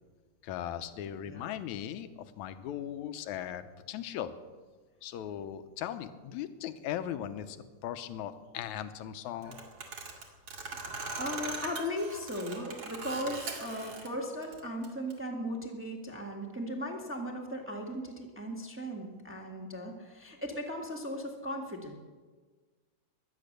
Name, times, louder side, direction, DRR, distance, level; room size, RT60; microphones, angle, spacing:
voice 1, 0.4-2.1 2.4-4.3 5.0-7.6 7.8-9.6, left 10 dB, 70° left, 10 dB, 2.0 m, -38 dB
sound 1, 9.4-14.1 14.4-15.1, right 4 dB, 50° right, 3.1 m, -40 dB
voice 2, 10.8-21.9, equal, 10° right, 1 dB, 0.8 m, -37 dB
23.0 x 9.3 x 6.7 m, 1.4 s
omnidirectional pair, 3.8 m